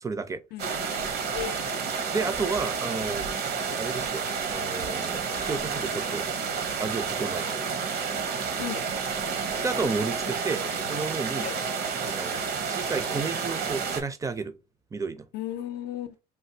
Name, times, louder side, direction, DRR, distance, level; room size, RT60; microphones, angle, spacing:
voice 1, 0.0-0.4 2.1-4.2 4.5-6.3 6.8-7.6 9.6-11.5 12.0-12.4 12.7-14.6 14.9-15.3, right 4 dB, 20° right, 0.4 m, -32 dB
voice 2, 0.5-0.8 1.3-1.8 8.6-8.8 10.2-10.4 11.4-11.6 15.3-16.1, left 12 dB, 75° left, 0.5 m, -35 dB
sound 1, 0.6-14.0, right 5 dB, 65° right, 0.8 m, -30 dB
3.4 x 2.5 x 2.7 m
cardioid pair, 110°, 17 cm